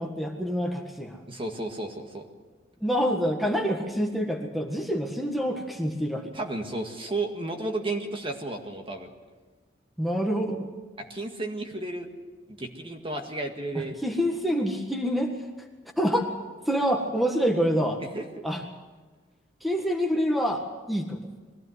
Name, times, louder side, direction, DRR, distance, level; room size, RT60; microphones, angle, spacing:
voice 1, 0.0-1.2 2.8-6.3 10.0-10.7 13.7-15.3 16.0-16.3 16.7-18.0 18.4-18.6 19.6-21.2, equal, ahead, 2 dB, 1.6 m, -27 dB
voice 2, 1.3-2.3 6.3-9.1 11.0-12.1 12.5-14.0 18.1-18.3, right 2 dB, 30° right, 3 dB, 1.9 m, -33 dB
22.0 x 16.0 x 8.0 m, 1.3 s
head